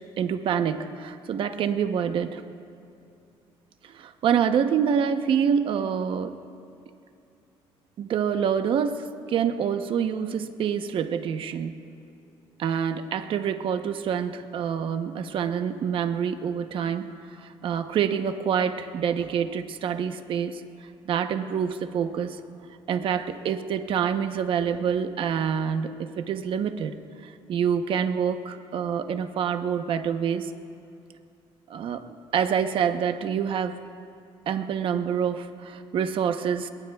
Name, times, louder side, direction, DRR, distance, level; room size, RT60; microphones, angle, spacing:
voice 1, 0.2-2.4 3.8-6.3 8.0-11.8 12.6-20.6 21.1-22.4 22.9-26.9 27.2-30.5 31.7-32.0 32.3-33.7 34.5-36.7, right 7 dB, 55° right, 8 dB, 0.9 m, -26 dB
26.5 x 22.0 x 2.4 m, 2.6 s
cardioid pair, 130°, 10 cm